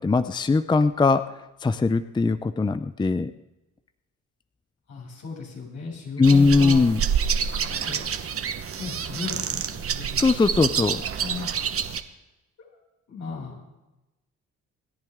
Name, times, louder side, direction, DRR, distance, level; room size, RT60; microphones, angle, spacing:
voice 1, 0.0-3.3 6.2-7.0 10.2-11.0, left 4 dB, 15° left, 12 dB, 0.5 m, -20 dB
voice 2, 4.9-6.8 7.7-8.4 8.8-10.6 11.2-11.8 12.6-12.8 13.1-13.7, left 4 dB, 70° left, -2 dB, 7.1 m, -37 dB
sound 1, 6.2-12.0, right 7 dB, 50° right, 1.1 m, -28 dB
28.0 x 10.5 x 3.6 m, 1.0 s
cardioid pair, 90°, 30 cm